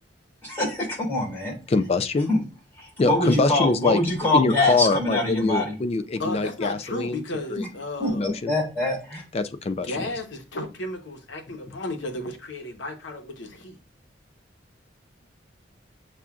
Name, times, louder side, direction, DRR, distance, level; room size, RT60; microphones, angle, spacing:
voice 1, 0.4-1.6 2.3-2.4 2.8-5.7 7.5-7.7 8.0-9.2, left 2 dB, 10° left, 2.5 m, -24 dB
voice 2, 1.7-2.3 3.0-4.0 4.3-7.2 7.5-7.6 8.1-8.5 9.3-9.9, left 3 dB, 35° left, 0.3 m, -24 dB
voice 3, 3.1-3.6 6.2-8.3 9.8-13.8, left 2 dB, 80° left, 0.9 m, -34 dB
6.9 x 2.4 x 2.4 m
head